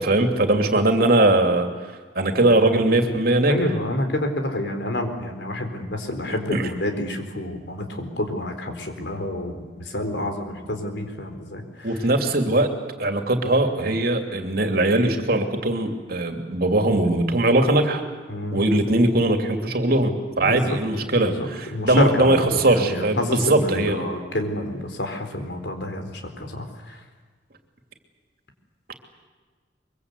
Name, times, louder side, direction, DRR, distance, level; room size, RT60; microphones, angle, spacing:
voice 1, 0.0-1.7 2.1-3.6 6.5-6.7 11.8-12.7 13.0-18.0 18.5-24.0, right 2 dB, 55° right, 5 dB, 2.9 m, -20 dB
voice 2, 3.5-11.9 18.3-18.6 20.4-20.8 21.1-27.0, left 1 dB, 70° left, 5 dB, 4.1 m, -28 dB
24.0 x 23.5 x 8.4 m, 1.5 s
head